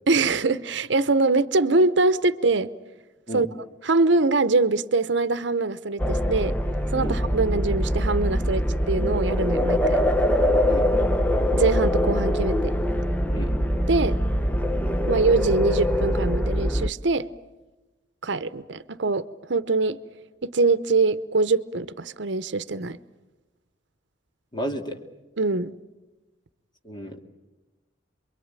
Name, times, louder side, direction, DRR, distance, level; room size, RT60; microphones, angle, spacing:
voice 1, 0.1-2.7 3.3-3.5 3.8-6.5 6.9-10.0 11.5-12.7 13.9-14.2 15.1-17.3 18.2-20.0 20.4-23.0 25.4-25.7, right 3 dB, 70° right, 0.9 m, -23 dB
sound 1, 6.0-16.9, equal, 10° left, 0.8 m, -23 dB
voice 2, 24.5-25.0 26.8-27.2, equal, 25° left, 2.4 m, -32 dB
28.0 x 23.0 x 9.0 m
head